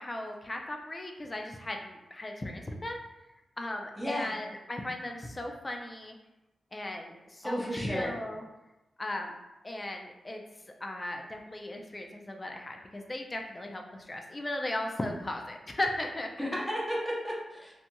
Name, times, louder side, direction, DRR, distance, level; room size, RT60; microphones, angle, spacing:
voice 1, 0.0-3.0 3.6-6.2 6.7-8.4 9.0-9.3 9.6-10.4 10.8-16.5, left 1 dB, 30° left, 2 dB, 0.4 m, -37 dB
voice 2, 4.0-4.4 7.4-8.1 16.4-17.7, equal, 5° right, -4 dB, 0.7 m, -33 dB
2.8 x 2.5 x 2.2 m, 0.99 s
cardioid pair, 70°, 0 cm